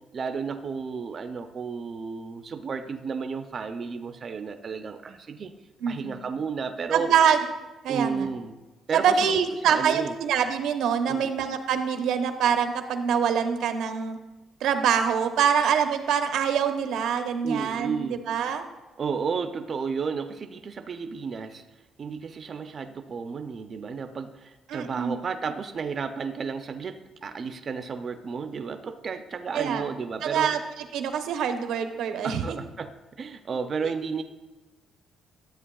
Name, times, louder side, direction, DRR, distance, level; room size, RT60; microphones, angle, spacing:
voice 1, 0.1-5.5 5.9-7.1 7.9-8.6 8.9-10.1 11.1-11.3 17.4-18.2 19.0-21.6 22.0-30.5 32.2-32.9 33.2-34.2, right 5 dB, 40° right, 7 dB, 0.4 m, -32 dB
voice 2, 5.8-6.2 6.9-7.4 7.8-8.3 8.9-14.2 14.6-18.6 24.7-25.2 29.5-29.9 30.2-30.6 30.9-32.6 33.8-33.9, right 7 dB, 80° right, 7 dB, 0.7 m, -25 dB
12.5 x 7.8 x 2.3 m, 1.2 s
cardioid pair, 140°, 0 cm